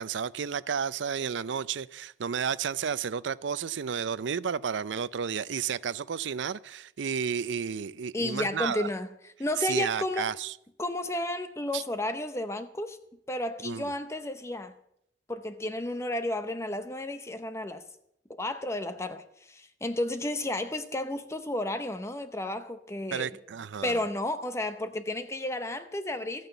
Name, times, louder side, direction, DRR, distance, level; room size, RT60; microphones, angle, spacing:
voice 1, 0.0-8.9 9.6-10.5 11.7-11.8 13.6-13.9 23.1-24.0, right 7 dB, 80° right, 0.5 m, -32 dB
voice 2, 8.1-10.3 10.8-13.0 13.3-14.7 15.3-17.8 18.3-23.3 23.8-26.5, left 1 dB, 15° left, 0.7 m, -32 dB
14.0 x 9.4 x 8.0 m
head